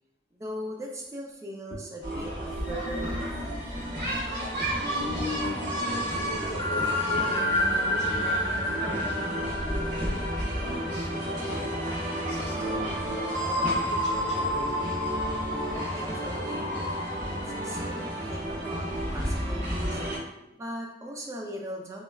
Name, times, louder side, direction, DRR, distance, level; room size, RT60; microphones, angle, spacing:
voice 1, 0.3-3.3 15.4-20.0 20.6-22.0, equal, 15° right, -1 dB, 0.3 m, -40 dB
sound 1, 2.0-20.2, right 1 dB, 45° right, 1.1 m, -31 dB
sound 2, 2.6-11.5 11.9-12.1 13.3-16.1, left 1 dB, 20° left, 0.9 m, -31 dB
voice 2, 3.9-4.6 4.9-13.3 13.7-14.9 20.3-20.6, left 2 dB, 70° left, -4 dB, 0.7 m, -40 dB
3.0 x 2.2 x 2.3 m, 0.87 s
head